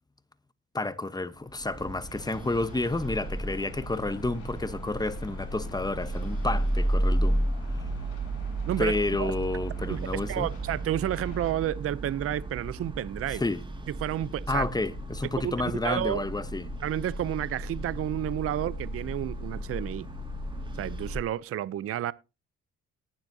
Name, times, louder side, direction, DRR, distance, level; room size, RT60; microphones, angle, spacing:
voice 1, 0.7-7.5 8.8-10.5 13.4-13.6 14.5-16.7, left 2 dB, 15° left, 0.9 m, -30 dB
sound 1, 1.5-21.2, right 1 dB, 15° right, 2.1 m, -33 dB
sound 2, 2.1-11.5, left 6 dB, 90° left, 3.2 m, -48 dB
voice 2, 8.7-9.3 9.9-13.4 13.9-14.7 15.4-15.5 15.8-16.2 16.8-20.1 20.7-22.1, right 11 dB, 50° right, 0.5 m, -31 dB
19.0 x 7.2 x 2.7 m
cardioid pair, 90°, 30 cm